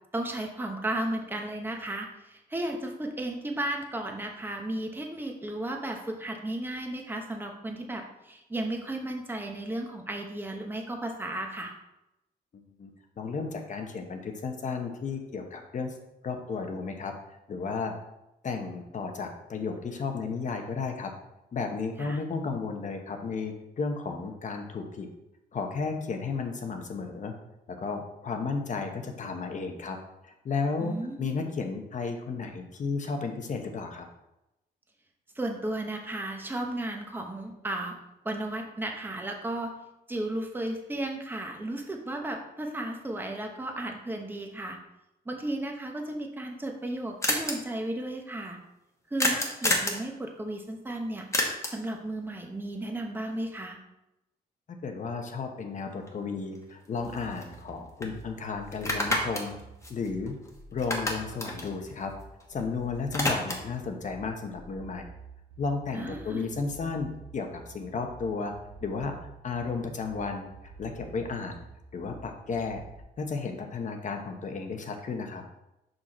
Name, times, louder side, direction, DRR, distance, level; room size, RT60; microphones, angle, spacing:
voice 1, 0.1-11.7 22.0-22.2 30.8-31.2 35.3-38.0 38.2-39.7 40.1-44.8 45.3-48.6 49.1-51.3 51.7-53.8 65.9-66.5, right 1 dB, 10° right, 2 dB, 1.0 m, -34 dB
voice 2, 12.5-12.9 13.2-15.9 16.2-17.9 18.4-21.1 21.5-25.1 25.5-27.3 27.7-30.0 30.2-34.1 54.8-59.6 59.9-60.3 60.7-62.1 62.5-65.0 65.6-68.5 68.8-69.1 69.4-71.6 71.9-72.8 73.2-75.4, left 4 dB, 45° left, 4 dB, 1.0 m, -33 dB
sound 1, 46.3-46.4 46.5-46.6 46.8-46.9 47.2-47.5 49.2-50.0 51.3-51.9 56.1-56.2 56.5-57.7 58.0-58.1 58.7-60.5 60.8-62.6 62.9-63.8, left 1 dB, 15° left, 1.2 m, -29 dB
sound 2, 57.0-73.0, right 5 dB, 90° right, 1.2 m, -49 dB
5.6 x 5.3 x 4.2 m, 0.91 s
cardioid pair, 115°, 17 cm